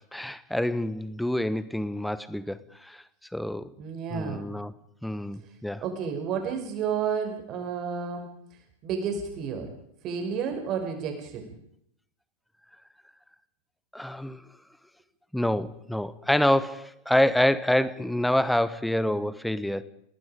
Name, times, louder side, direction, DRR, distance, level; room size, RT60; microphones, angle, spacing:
voice 1, 0.0-3.0 3.3-3.7 4.1-4.7 5.0-5.8 13.9-14.4 15.3-19.8, left 1 dB, ahead, 16 dB, 1.2 m, -27 dB
voice 2, 3.8-4.5 5.8-8.3 8.8-9.7 10.0-11.5, right 6 dB, 35° right, 5 dB, 6.0 m, -31 dB
28.5 x 19.0 x 5.2 m, 0.72 s
figure-of-eight pair, 90°, 0 cm